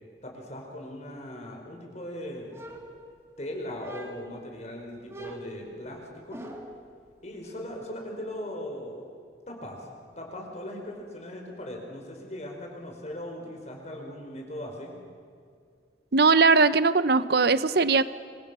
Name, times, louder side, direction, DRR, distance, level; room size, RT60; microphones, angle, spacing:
voice 1, 0.2-2.5 3.4-6.4 7.2-9.0 9.5-9.9 10.2-14.9, left 1 dB, 40° left, 1 dB, 5.0 m, -39 dB
sound 1, 2.5-3.4 3.8-4.4 5.1-6.9, right 1 dB, 15° right, 2.5 m, -43 dB
voice 2, 16.1-18.0, right 4 dB, 60° right, 14 dB, 0.9 m, -20 dB
26.5 x 25.0 x 6.3 m, 2.3 s
head